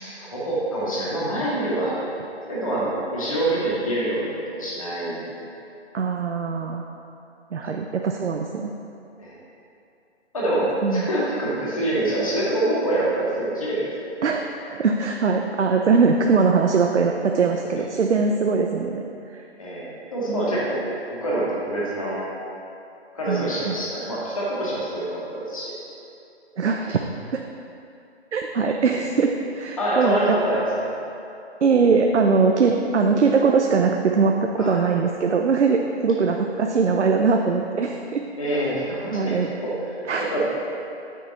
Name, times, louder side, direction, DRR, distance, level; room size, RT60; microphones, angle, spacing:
voice 1, 0.0-2.0 2.5-5.5 9.2-9.4 10.3-13.9 17.8-17.9 19.6-20.8 21.2-22.2 23.1-25.7 29.8-30.9 34.6-34.8 38.4-39.4 39.6-39.7 40.2-40.4, right 1 dB, 30° left, -7 dB, 1.9 m, -25 dB
voice 2, 5.9-6.8 7.5-8.7 10.8-11.1 14.2-19.0 19.3-19.4 20.3-20.5 23.3-23.8 26.6-27.0 27.3-27.4 28.3-30.4 31.6-38.2 39.1-39.5 40.1-40.4, right 5 dB, 80° right, 2 dB, 0.7 m, -21 dB
8.3 x 6.8 x 4.2 m, 2.6 s
hypercardioid pair, 175°, 34 cm